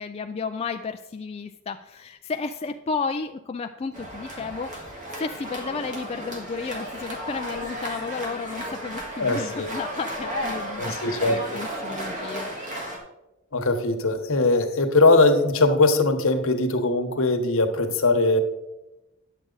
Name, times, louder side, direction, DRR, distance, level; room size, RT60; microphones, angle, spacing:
voice 1, 0.0-10.9 11.2-13.0, left 4 dB, 30° left, 6 dB, 0.3 m, -33 dB
sound 1, 3.9-13.0, equal, 35° right, 1.7 m, -34 dB
voice 2, 9.2-9.7 10.8-11.4 13.5-18.4, left 2 dB, 65° left, 6 dB, 1.1 m, -21 dB
10.0 x 7.5 x 3.9 m, 0.99 s
head